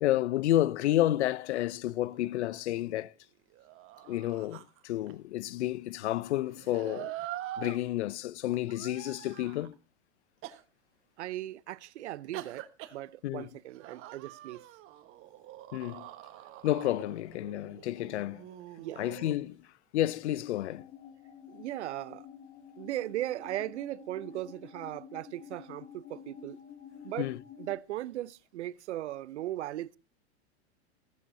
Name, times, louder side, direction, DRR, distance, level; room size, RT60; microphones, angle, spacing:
voice 1, 0.0-3.1 4.0-7.1 7.6-9.8 13.2-13.5 15.7-16.1 16.6-18.4 19.0-19.7 19.9-20.8 27.2-27.4, left 14 dB, 80° left, 0.7 m, -30 dB
sound 1, 1.8-3.1 3.5-5.1 6.5-7.8 8.7-9.7 10.4-10.6 12.3-13.0 13.7-19.3, right 13 dB, 40° right, 1.4 m, -45 dB
voice 2, 11.2-12.6 12.9-14.6 18.8-19.1 21.5-22.3 22.8-26.6 27.0-27.3 27.6-30.0, right 14 dB, 85° right, 0.7 m, -38 dB
sound 2, 20.7-27.8, left 9 dB, 30° left, 1.2 m, -50 dB
15.5 x 13.5 x 2.7 m
hypercardioid pair, 120°, 34 cm